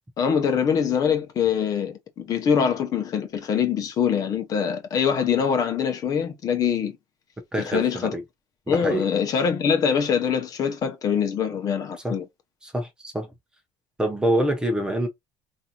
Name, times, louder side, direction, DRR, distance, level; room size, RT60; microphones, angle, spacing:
voice 1, 0.2-7.0 7.6-8.1 8.7-12.2, left 7 dB, 40° left, 0.8 m, -24 dB
voice 2, 7.5-8.2 8.7-9.0 12.0-12.1 12.6-13.3 14.0-15.1, right 1 dB, 10° right, 0.8 m, -25 dB
4.7 x 2.7 x 2.9 m
cardioid pair, 165°, 10 cm